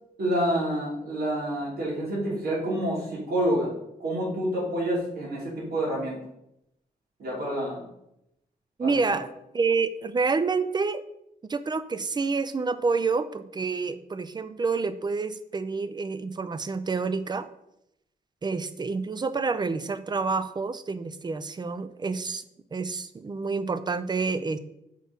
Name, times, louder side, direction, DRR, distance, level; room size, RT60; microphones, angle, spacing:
voice 1, 0.2-3.7 4.0-6.2 7.2-7.9 8.8-9.2, right 1 dB, 80° right, -5 dB, 3.0 m, -28 dB
voice 2, 8.8-9.3 9.5-11.0 11.5-17.5 18.4-22.4 22.7-24.6, right 4 dB, 25° right, 13 dB, 0.5 m, -28 dB
6.2 x 4.4 x 5.2 m, 0.81 s
cardioid pair, 100°, 16 cm